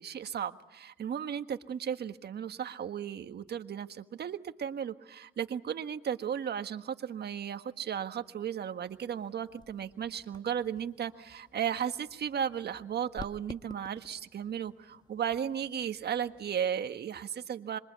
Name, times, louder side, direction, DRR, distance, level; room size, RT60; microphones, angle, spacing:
voice 1, 0.0-17.8, right 8 dB, 55° right, 9 dB, 1.6 m, -35 dB
sound 1, 8.9-16.6, left 3 dB, 20° left, 1.2 m, -53 dB
26.5 x 23.5 x 8.2 m, 0.90 s
cardioid pair, 90°, 20 cm